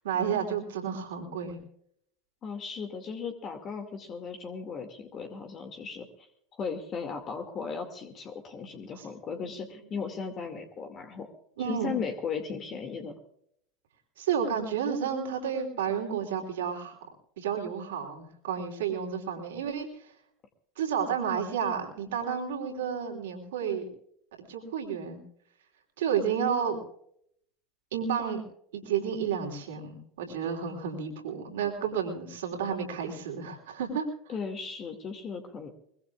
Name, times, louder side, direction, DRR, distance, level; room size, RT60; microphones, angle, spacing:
voice 1, 0.0-1.6 11.6-12.0 14.2-17.0 17.4-19.9 20.8-23.9 24.5-25.2 26.0-26.8 27.9-28.4 28.7-34.1, right 7 dB, 80° right, 1 dB, 3.2 m, -31 dB
voice 2, 2.4-6.3 6.5-11.3 11.6-13.1 34.3-35.7, left 5 dB, 40° left, 5 dB, 2.2 m, -36 dB
23.0 x 21.0 x 2.4 m, 0.70 s
hypercardioid pair, 85°, 0 cm